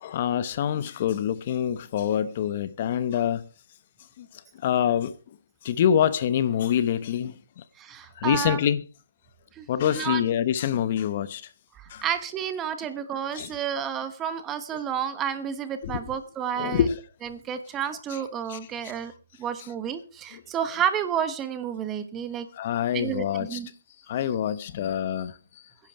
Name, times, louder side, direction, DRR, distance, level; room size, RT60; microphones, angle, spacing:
voice 1, 0.0-3.4 4.2-4.3 4.6-5.1 5.6-7.6 8.2-8.8 9.7-11.4 11.9-12.0 13.3-13.5 15.8-16.0 16.6-17.0 18.1-18.2 18.5-18.6 20.3-20.4 22.5-23.6 24.1-25.3, left 9 dB, 35° left, 0.9 m, -25 dB
voice 2, 7.8-8.6 9.6-10.2 11.7-16.8 17.3-19.1 19.4-22.5 22.9-23.7, right 8 dB, 15° right, 1.1 m, -30 dB
16.0 x 10.5 x 4.7 m
hypercardioid pair, 165°, 0 cm